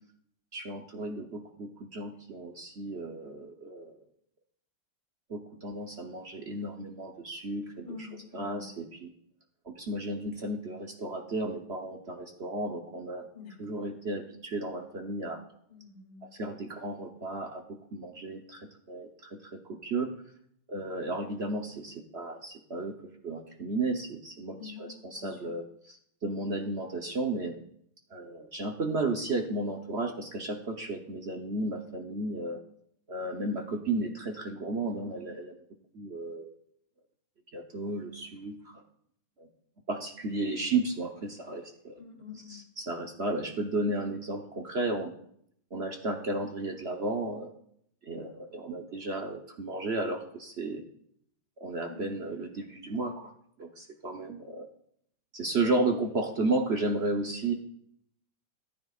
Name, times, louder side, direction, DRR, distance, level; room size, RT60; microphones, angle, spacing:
voice 1, 0.5-4.0 5.3-9.1 9.6-13.3 13.6-15.4 16.2-20.1 20.7-27.5 28.1-32.6 33.1-35.6 35.9-36.6 37.5-38.8 39.4-39.5 39.9-41.9 42.3-45.1 45.7-47.5 48.0-50.8 51.6-53.3 53.6-54.7 55.3-57.5, right 2 dB, 45° right, 4 dB, 0.9 m, -33 dB
voice 2, 7.8-8.7 13.3-13.6 15.7-16.3 24.6-25.5 34.9-35.2 42.0-42.6 51.9-52.1 57.1-57.3, left 6 dB, 35° left, 0 dB, 2.8 m, -46 dB
14.0 x 11.0 x 2.4 m, 0.67 s
omnidirectional pair, 2.0 m